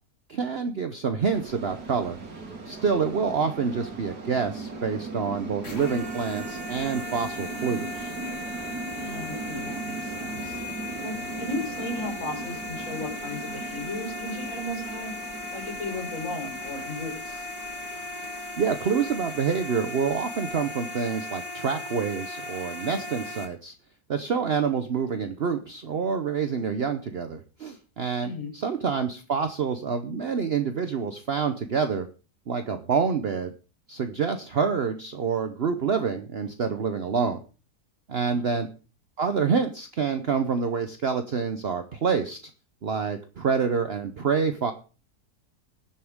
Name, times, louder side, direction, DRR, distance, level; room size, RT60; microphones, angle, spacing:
voice 1, 0.3-2.2 2.7-8.1 18.6-23.7 24.1-32.1 32.5-33.5 33.9-37.4 38.1-38.7 39.2-42.4 42.8-44.7, right 6 dB, 50° right, 8 dB, 0.9 m, -27 dB
sound 1, 1.2-20.7, right 3 dB, 90° right, 2.8 m, -39 dB
sound 2, 5.6-23.5, left 2 dB, 70° left, 3.7 m, -37 dB
voice 2, 8.9-10.6 11.0-15.1 15.5-17.5 28.2-28.5 38.2-38.5, left 2 dB, 50° left, 1 dB, 5.2 m, -36 dB
21.5 x 7.1 x 3.6 m, 0.34 s
omnidirectional pair, 1.7 m